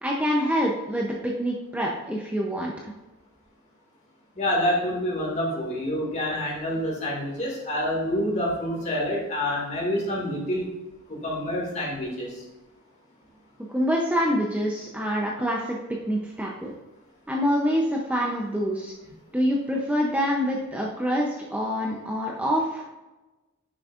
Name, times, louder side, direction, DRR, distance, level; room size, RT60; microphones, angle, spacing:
voice 1, 0.0-2.9 13.7-15.8 16.0-16.7 17.3-18.9 19.3-22.8, equal, 5° right, -2 dB, 0.6 m, -26 dB
voice 2, 4.4-10.7 11.1-12.4, left 1 dB, 30° left, -3 dB, 2.1 m, -27 dB
9.7 x 6.3 x 2.5 m, 1.1 s
head